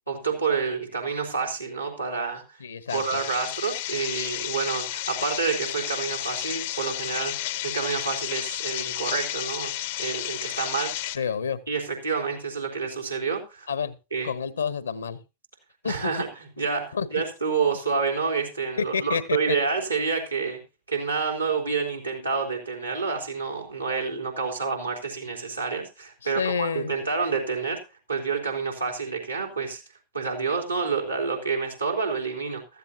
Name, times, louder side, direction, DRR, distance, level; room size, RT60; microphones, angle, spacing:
voice 1, 0.1-2.4 2.9-10.9 11.7-13.7 14.1-14.3 15.8-16.3 16.6-20.6 20.9-27.8 28.1-29.8 30.1-32.8, right 5 dB, 85° right, 3.6 m, -28 dB
voice 2, 2.6-3.2 11.1-11.6 13.7-14.0 14.2-15.2 15.8-16.3 16.9-17.2 18.8-19.6 26.2-26.9, left 6 dB, 70° left, 1.1 m, -29 dB
sound 1, 2.9-11.2, left 14 dB, 55° left, 0.8 m, -32 dB
14.5 x 13.5 x 2.8 m
figure-of-eight pair, 90°, 0 cm